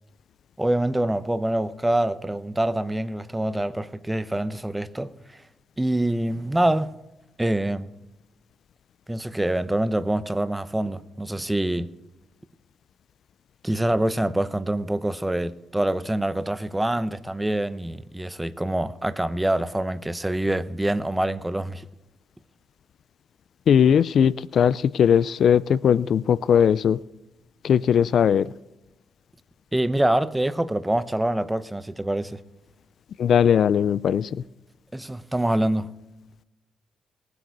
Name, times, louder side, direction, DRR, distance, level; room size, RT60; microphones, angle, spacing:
voice 1, 0.6-5.4 5.8-6.9 7.4-7.9 9.1-11.9 13.6-21.9 29.7-32.4 34.9-35.9, right 1 dB, 10° right, 0.7 m, -25 dB
voice 2, 23.7-27.0 27.6-28.4 33.2-34.3, left 8 dB, 60° left, 0.4 m, -19 dB
18.5 x 8.0 x 4.6 m
cardioid pair, 90°, 0 cm